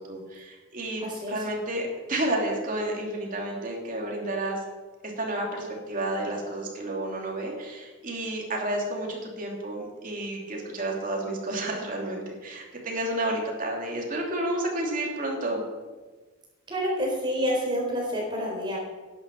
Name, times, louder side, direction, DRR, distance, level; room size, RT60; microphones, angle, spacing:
voice 1, 0.0-4.6 5.0-15.6, right 1 dB, 40° right, -1 dB, 2.8 m, -31 dB
voice 2, 1.0-1.3 16.7-18.8, equal, 20° right, -2 dB, 4.2 m, -28 dB
11.0 x 8.9 x 6.9 m, 1.3 s
head